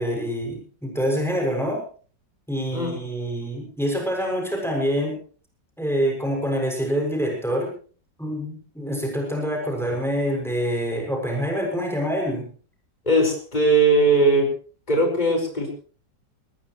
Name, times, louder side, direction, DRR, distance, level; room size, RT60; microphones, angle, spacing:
voice 1, 0.0-1.8 2.5-5.1 5.8-7.7 8.2-12.5, equal, ahead, 0 dB, 6.6 m, -26 dB
voice 2, 13.1-14.5 14.9-15.7, right 2 dB, 20° left, 1 dB, 5.2 m, -19 dB
20.5 x 20.0 x 3.2 m, 0.41 s
omnidirectional pair, 1.9 m